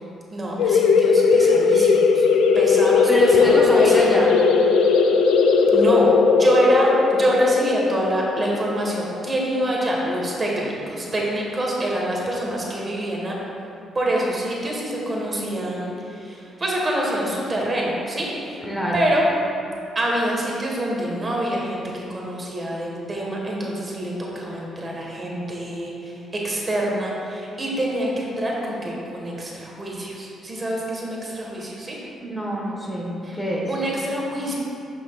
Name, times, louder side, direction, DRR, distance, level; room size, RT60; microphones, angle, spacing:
voice 1, 0.3-2.3 2.5-4.1 5.7-13.4 13.9-18.6 18.9-19.2 19.9-32.0 33.2-33.4 33.7-34.5, right 1 dB, 30° right, -3 dB, 1.4 m, -26 dB
sound 1, 0.6-9.9, left 5 dB, 90° left, 0.4 m, -18 dB
voice 2, 3.1-4.3 18.6-18.9 32.2-33.7, equal, 10° left, -4 dB, 1.2 m, -25 dB
9.4 x 6.1 x 2.3 m, 2.7 s
cardioid pair, 90°, 0 cm